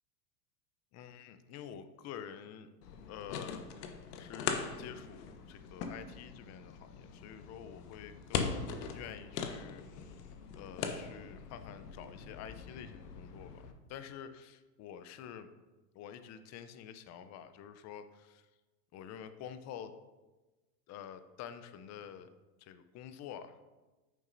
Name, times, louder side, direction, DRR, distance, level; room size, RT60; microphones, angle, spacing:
voice 1, 0.9-2.7 3.1-8.5 8.9-10.2 10.5-15.5 15.9-18.5 18.9-19.9 20.9-22.3 22.6-23.6, left 9 dB, 35° left, 10 dB, 0.6 m, -48 dB
sound 1, 2.8-13.7, left 6 dB, 70° left, 1.0 m, -41 dB
8.6 x 6.3 x 2.6 m, 1.2 s
hypercardioid pair, 100°, 48 cm